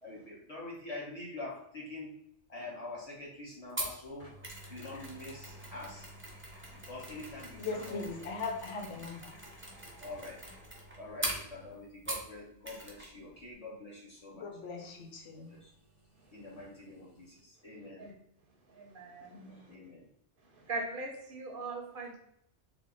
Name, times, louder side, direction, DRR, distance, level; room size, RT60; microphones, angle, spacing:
voice 1, 0.0-2.1 2.5-4.3 4.7-6.1 6.9-8.0 10.0-10.4 11.0-14.5 15.5-15.7 16.3-18.1 19.5-20.0, left 2 dB, 35° left, -5 dB, 1.2 m, -45 dB
sound 1, 3.7-3.8 4.2-11.8 12.2-12.3 14.8-17.4, equal, 65° left, 1.9 m, -56 dB
Mechanisms, 3.8-12.4 12.6-13.1 13.4-13.5, right 1 dB, 15° right, 0.5 m, -43 dB
voice 2, 7.6-9.4 14.3-15.5 19.3-19.8, left 4 dB, 90° left, 3 dB, 1.0 m, -40 dB
voice 3, 18.7-19.7 20.6-22.2, right 2 dB, 55° right, 0 dB, 0.7 m, -40 dB
3.5 x 2.1 x 3.7 m, 0.72 s
omnidirectional pair, 1.2 m